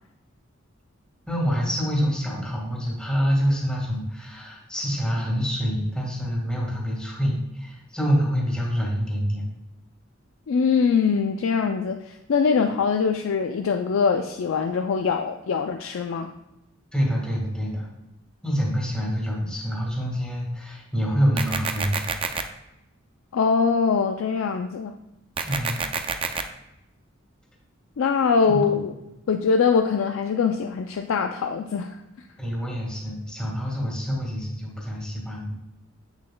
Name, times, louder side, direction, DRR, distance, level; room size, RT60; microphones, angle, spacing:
voice 1, 1.3-9.5 16.9-17.9 18.4-21.9 25.5-25.9 28.4-28.7 32.4-35.6, equal, 5° left, -3 dB, 1.7 m, -26 dB
voice 2, 10.5-16.3 23.3-24.9 28.0-28.9 29.3-32.0, left 5 dB, 70° left, 5 dB, 0.4 m, -23 dB
sound 1, 21.4-22.4 25.4-26.4, right 5 dB, 25° right, 0.4 m, -28 dB
7.6 x 7.1 x 2.3 m, 0.88 s
head